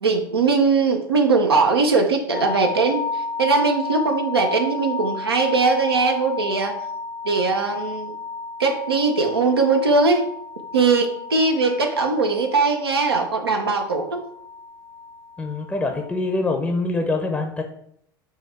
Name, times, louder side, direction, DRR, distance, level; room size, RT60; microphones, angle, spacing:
voice 1, 0.0-6.8 7.2-8.1 8.6-10.2 10.7-14.2, right 4 dB, 90° right, 3 dB, 0.5 m, -20 dB
sound 1, 2.3-16.4, left 4 dB, 90° left, 0.9 m, -33 dB
voice 2, 15.4-17.6, left 2 dB, 10° left, 4 dB, 0.5 m, -24 dB
4.5 x 2.3 x 4.5 m, 0.70 s
hypercardioid pair, 80°, 13 cm